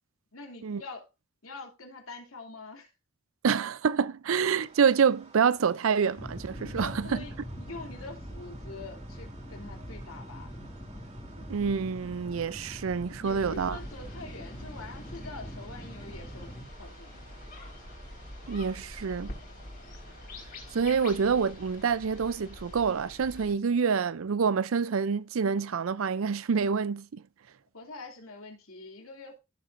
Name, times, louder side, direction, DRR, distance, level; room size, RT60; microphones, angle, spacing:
voice 1, 0.3-1.1 1.4-2.9 6.6-10.6 13.2-16.5 16.8-17.4 27.7-29.4, left 3 dB, 85° left, 2.8 m, -45 dB
voice 2, 3.4-7.2 11.5-13.8 18.5-19.3 20.7-27.2, right 6 dB, 80° right, 0.5 m, -27 dB
sound 1, 4.6-22.7, right 3 dB, 35° right, 2.6 m, -56 dB
sound 2, 6.2-16.7, equal, 20° left, 2.2 m, -43 dB
Country Atmos with Sheep, 13.2-23.5, left 1 dB, 45° left, 4.4 m, -45 dB
15.0 x 7.5 x 2.6 m
head